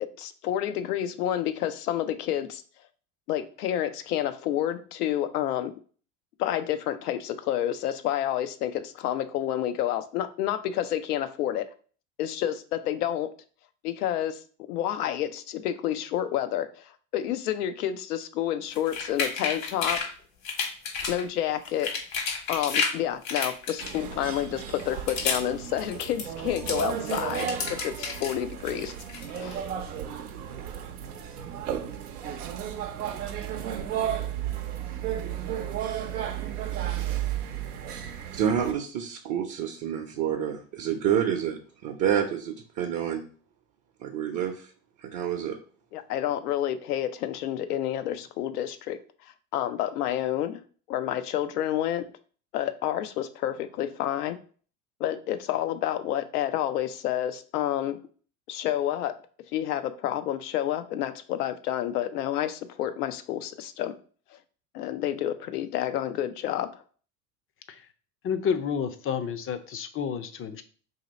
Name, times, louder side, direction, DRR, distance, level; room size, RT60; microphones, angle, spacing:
voice 1, 0.0-2.6 3.3-5.7 6.4-11.7 12.2-13.3 13.8-14.4 14.7-16.8 17.1-20.0 21.1-21.9 22.5-28.9 29.3-29.6 45.9-49.0 49.5-52.1 52.5-54.4 55.0-58.0 58.5-59.1 59.5-63.9 64.7-66.7, left 11 dB, 90° left, 0.5 m, -29 dB
sound 1, 18.7-20.1 20.4-21.2 21.6-23.0 23.2-24.2 24.7-25.5 25.8-28.4 28.7-29.6, left 5 dB, 70° left, 1.3 m, -31 dB
sound 2, 23.8-38.7, right 9 dB, 85° right, 0.7 m, -33 dB
voice 2, 38.3-43.2 44.0-44.7 45.0-45.6, right 9 dB, 40° right, 0.6 m, -28 dB
voice 3, 68.2-70.6, left 7 dB, 30° left, 0.5 m, -30 dB
2.9 x 2.8 x 4.0 m
hypercardioid pair, 80°, 44 cm